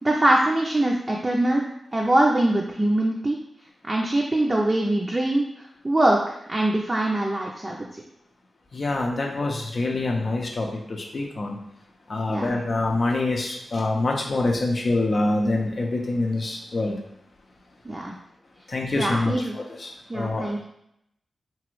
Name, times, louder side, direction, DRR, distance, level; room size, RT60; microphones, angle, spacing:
voice 1, 0.0-3.4 3.8-5.5 5.8-7.8 12.3-12.6 17.8-18.1 18.9-19.6 20.1-20.7, right 1 dB, 25° right, -2 dB, 0.5 m, -23 dB
voice 2, 8.7-11.6 12.1-17.0 18.7-20.5, left 2 dB, 55° left, 1 dB, 0.6 m, -25 dB
3.0 x 2.4 x 3.1 m, 0.77 s
cardioid pair, 50°, 0 cm